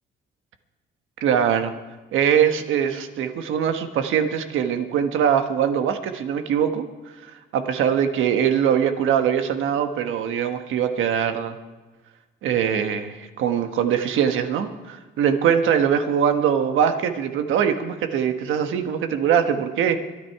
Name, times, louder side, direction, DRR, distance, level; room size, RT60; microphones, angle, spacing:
voice 1, 1.2-1.7 2.1-6.9 7.5-11.6 12.4-20.0, right 8 dB, 85° right, 7 dB, 1.3 m, -22 dB
24.0 x 9.6 x 4.7 m, 1.2 s
cardioid pair, 90°, 20 cm